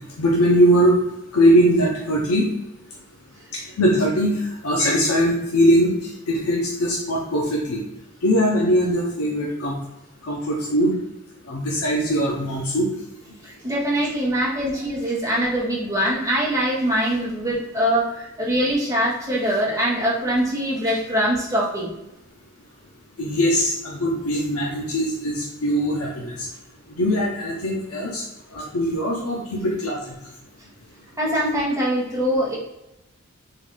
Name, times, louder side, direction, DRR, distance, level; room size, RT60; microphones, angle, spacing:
voice 1, 0.2-1.0 1.3-2.5 3.8-4.4 4.6-5.9 6.3-7.9 8.2-9.8 10.2-10.9 11.5-12.9 23.2-26.5 27.0-28.2 28.5-30.0, equal, 90° left, -2 dB, 0.7 m, -20 dB
voice 2, 13.4-21.9 31.2-32.6, equal, 15° right, -6 dB, 1.0 m, -23 dB
3.7 x 2.6 x 3.6 m, 0.91 s
head